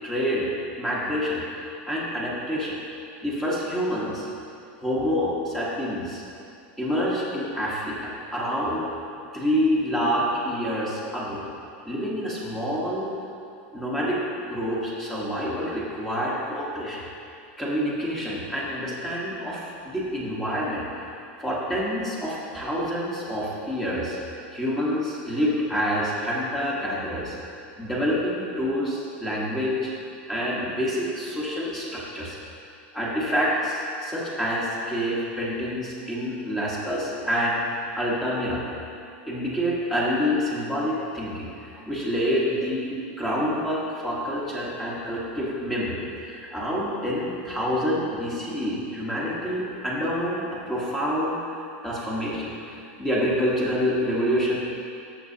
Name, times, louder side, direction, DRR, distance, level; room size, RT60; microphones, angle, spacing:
voice 1, 0.0-0.5 0.8-1.4 1.8-2.8 3.2-4.3 4.8-6.2 6.8-8.9 9.3-11.4 11.8-13.1 13.7-17.0 17.6-21.1 21.4-24.2 24.5-27.4 27.8-29.9 30.3-32.4 32.9-37.6 37.9-38.6 39.3-51.4 51.8-54.6, equal, 5° left, -6 dB, 1.1 m, -27 dB
13.0 x 6.2 x 2.7 m, 2.5 s
supercardioid pair, 165°, 6 cm